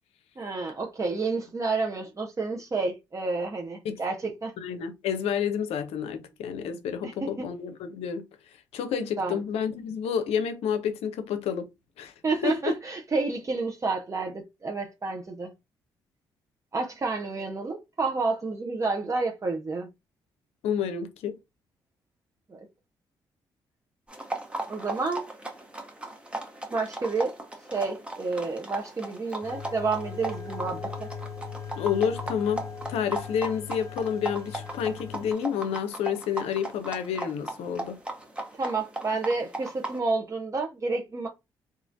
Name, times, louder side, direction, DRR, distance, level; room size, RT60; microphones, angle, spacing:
voice 1, 0.4-4.5 7.0-7.4 9.2-9.4 12.2-15.5 16.7-19.9 22.5-22.6 24.7-25.2 26.7-27.3 27.7-31.1 38.5-41.3, right 3 dB, 30° right, 0.6 m, -30 dB
voice 2, 4.6-8.2 8.7-11.7 12.0-12.1 12.4-12.5 20.6-21.4 31.8-38.0, left 7 dB, 70° left, 0.5 m, -29 dB
sound 1, 24.1-40.0, right 2 dB, 10° right, 1.0 m, -38 dB
sound 2, 29.4-35.3, left 6 dB, 30° left, 0.7 m, -39 dB
3.0 x 2.4 x 2.5 m
hypercardioid pair, 40°, 11 cm